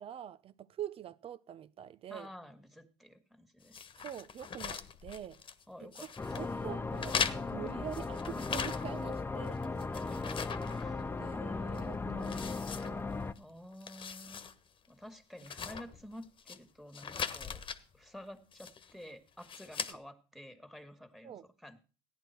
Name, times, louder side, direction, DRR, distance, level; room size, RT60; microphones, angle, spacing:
voice 1, 0.0-2.3 3.9-5.4 5.8-9.6 11.2-13.1 19.8-20.0 21.2-21.5, right 10 dB, 50° right, 0.8 m, -45 dB
voice 2, 2.1-3.8 5.7-6.3 9.9-11.2 11.5-12.4 13.4-14.5 14.9-17.6 17.9-21.4 21.6-21.8, equal, ahead, 2.2 m, -51 dB
sound 1, 3.7-5.6 5.9-6.5 7.0-9.1 9.5-11.4 11.7-11.8 12.2-13.4 13.7-14.5 14.8-14.9 15.4-16.6 16.9-17.8 18.5-18.9 19.4-19.9, left 6 dB, 40° left, 1.4 m, -40 dB
sound 2, 6.2-13.3, left 3 dB, 15° left, 0.8 m, -37 dB
14.5 x 10.5 x 4.6 m
supercardioid pair, 80°, 13 cm